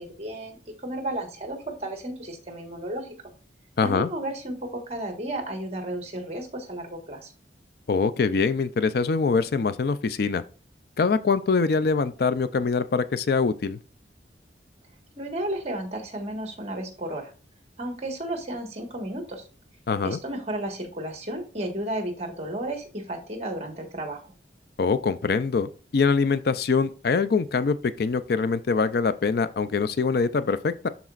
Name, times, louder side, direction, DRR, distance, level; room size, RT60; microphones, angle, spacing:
voice 1, 0.0-3.1 3.8-7.3 15.2-17.3 17.8-19.4 20.0-24.2, right 1 dB, 35° right, 1.5 m, -33 dB
voice 2, 3.8-4.1 7.9-10.4 11.0-13.8 19.9-20.2 24.8-30.9, left 4 dB, 60° left, 0.4 m, -24 dB
12.0 x 4.1 x 2.4 m
head